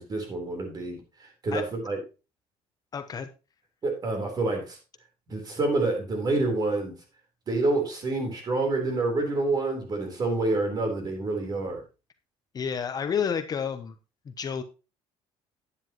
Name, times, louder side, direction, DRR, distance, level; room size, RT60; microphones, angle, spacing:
voice 1, 0.0-2.0 3.8-4.8 5.3-6.9 7.5-11.8, right 2 dB, 35° right, 3 dB, 3.8 m, -28 dB
voice 2, 2.9-3.3 12.5-13.9 14.3-14.6, left 7 dB, 35° left, 9 dB, 0.8 m, -30 dB
10.5 x 9.7 x 3.0 m, 0.30 s
cardioid pair, 130°, 12 cm